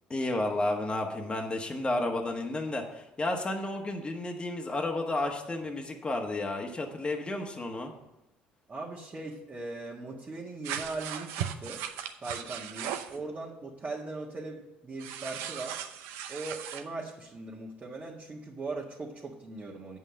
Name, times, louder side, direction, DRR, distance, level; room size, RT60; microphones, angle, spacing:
voice 1, 0.1-7.9, left 2 dB, 25° left, 2 dB, 1.3 m, -32 dB
voice 2, 8.7-11.8 12.2-15.8 16.3-20.0, right 3 dB, 30° right, -3 dB, 1.6 m, -39 dB
sound 1, 10.6-13.2 15.0-16.8, right 9 dB, 75° right, 0.7 m, -37 dB
8.0 x 5.6 x 7.4 m, 0.95 s
hypercardioid pair, 70°, 4 cm